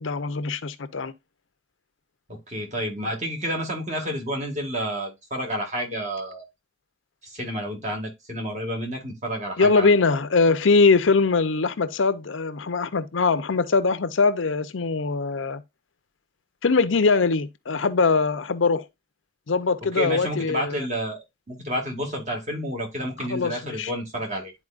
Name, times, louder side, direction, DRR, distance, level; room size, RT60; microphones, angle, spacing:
voice 1, 0.0-1.1 9.6-15.6 16.6-18.9 19.5-20.8 23.2-23.9, left 4 dB, 90° left, 0.7 m, -22 dB
voice 2, 2.3-6.5 7.2-9.9 19.9-21.2 21.5-24.5, equal, 40° right, 1.7 m, -30 dB
11.0 x 4.3 x 2.4 m
head